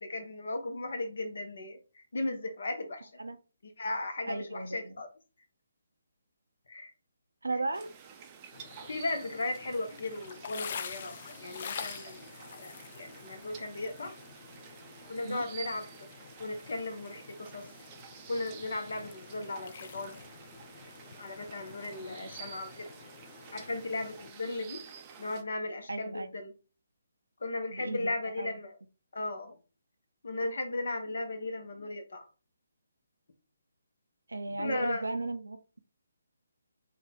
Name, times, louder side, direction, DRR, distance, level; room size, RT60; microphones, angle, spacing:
voice 1, 0.0-3.1 3.8-5.1 6.7-6.9 8.9-14.1 15.1-16.1 16.4-17.7 18.3-20.2 21.2-22.9 23.5-24.8 25.2-26.5 27.4-28.8 29.1-29.6 30.2-32.3 34.6-35.1, left 2 dB, 60° left, 5 dB, 0.9 m, -36 dB
voice 2, 4.3-5.0 7.4-7.9 15.2-15.4 22.0-22.3 25.9-26.3 27.7-28.5 34.3-35.8, right 2 dB, 75° right, 9 dB, 0.5 m, -36 dB
sound 1, 7.7-25.4, right 7 dB, 25° right, 0.5 m, -50 dB
sound 2, 8.5-24.3, left 7 dB, 40° left, 0.3 m, -47 dB
3.6 x 2.3 x 3.6 m, 0.34 s
figure-of-eight pair, 140°, 0 cm